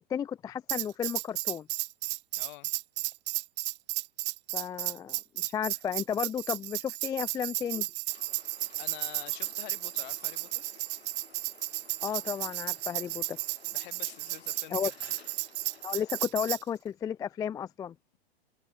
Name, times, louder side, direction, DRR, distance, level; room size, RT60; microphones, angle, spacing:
voice 1, 0.0-1.7 4.5-7.9 12.0-13.4 14.7-14.9 15.8-17.9, left 8 dB, 10° left, 0.4 m, -33 dB
Tambourine, 0.7-16.6, right 22 dB, 35° right, 0.9 m, -33 dB
voice 2, 2.3-2.7 8.8-10.6 13.7-14.9, left 24 dB, 50° left, 1.3 m, -47 dB
sound 1, 8.1-16.2, left 7 dB, 85° left, 3.0 m, -56 dB
hypercardioid pair, 105°, 31 cm